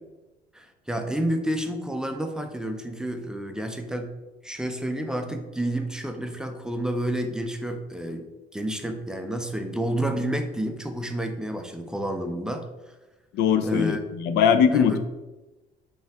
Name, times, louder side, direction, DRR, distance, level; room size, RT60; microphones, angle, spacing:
voice 1, 0.5-4.1 4.4-8.3 8.5-12.7 13.6-14.0 14.7-15.0, right 1 dB, 5° right, 6 dB, 0.4 m, -30 dB
voice 2, 13.3-15.0, left 7 dB, 80° left, 9 dB, 0.4 m, -21 dB
5.4 x 2.3 x 3.4 m, 1.1 s
cardioid pair, 110°, 17 cm